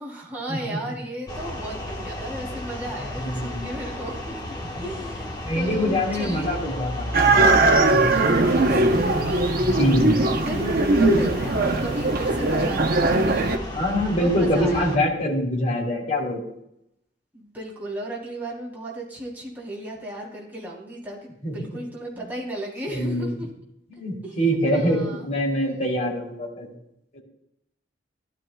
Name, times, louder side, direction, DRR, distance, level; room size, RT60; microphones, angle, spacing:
voice 1, 0.0-4.3 4.8-6.6 8.1-9.8 10.5-10.7 11.0-13.7 14.2-15.0 17.3-23.5 24.2-24.4 24.7-25.3, right 1 dB, 10° right, -5 dB, 3.7 m, -35 dB
sound 1, 1.3-15.0, left 1 dB, 25° left, 1.4 m, -34 dB
voice 2, 3.2-3.7 4.8-4.9 5.4-7.4 7.8-8.1 9.5-10.4 13.7-16.4 21.4-21.5 22.9-23.3 23.9-26.7 27.1-27.2, equal, 40° left, -2 dB, 3.2 m, -24 dB
sound 2, 7.1-13.6, right 2 dB, 55° right, 0.9 m, -20 dB
15.0 x 12.0 x 2.4 m, 0.79 s
head